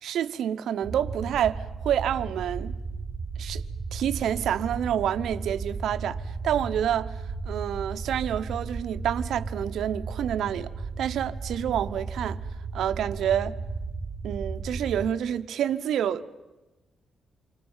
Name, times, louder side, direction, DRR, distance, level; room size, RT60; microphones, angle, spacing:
voice 1, 0.0-2.7 3.4-3.6 3.9-7.2 7.5-10.7 11.0-12.4 12.7-13.6 14.2-16.4, right 9 dB, 85° right, 1.0 m, -28 dB
sound 1, 0.8-15.1, right 4 dB, 35° right, 1.8 m, -35 dB
28.0 x 25.0 x 5.7 m
cardioid pair, 135°, 0 cm